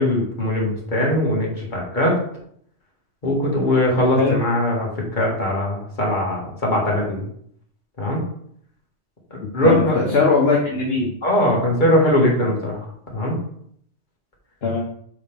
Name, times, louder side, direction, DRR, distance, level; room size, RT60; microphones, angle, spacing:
voice 1, 0.0-2.2 3.2-7.2 8.0-8.2 9.3-10.0 11.2-12.9 13.1-13.4, left 1 dB, 40° left, -3 dB, 2.0 m, -20 dB
voice 2, 9.6-11.1 14.6-14.8, left 4 dB, 55° left, -2 dB, 1.3 m, -20 dB
7.0 x 4.2 x 3.5 m, 0.67 s
omnidirectional pair, 1.2 m